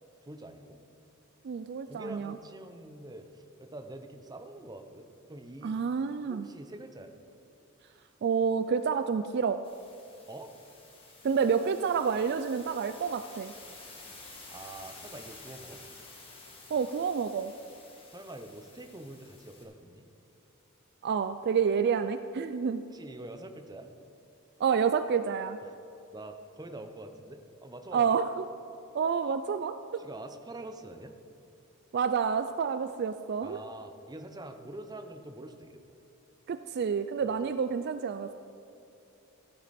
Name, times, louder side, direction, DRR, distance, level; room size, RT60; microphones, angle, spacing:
voice 1, 0.2-0.8 1.9-5.7 6.2-7.1 10.3-10.5 14.5-15.8 18.1-20.1 22.9-23.9 25.7-25.8 26.1-28.2 30.0-31.1 33.4-35.8, right 1 dB, 20° right, 6 dB, 0.7 m, -45 dB
voice 2, 1.4-2.4 5.6-6.5 8.2-9.6 11.2-13.5 16.7-17.5 21.0-22.8 24.6-25.6 27.9-28.5 28.9-30.0 31.9-33.6 36.5-38.3, right 6 dB, 50° right, 10 dB, 0.3 m, -29 dB
sound 1, 9.6-19.6, left 3 dB, 25° left, 2.1 m, -51 dB
14.0 x 9.8 x 4.2 m, 2.9 s
head